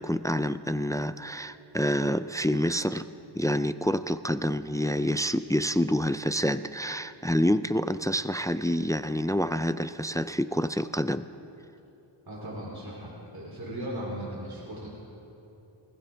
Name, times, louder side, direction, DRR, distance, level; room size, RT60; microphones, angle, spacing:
voice 1, 0.0-3.1 3.3-11.3, equal, 10° left, 12 dB, 0.3 m, -27 dB
voice 2, 12.2-15.0, right 1 dB, 45° right, -5 dB, 3.1 m, -37 dB
24.0 x 15.5 x 3.4 m, 3.0 s
wide cardioid pair, 50°, 49 cm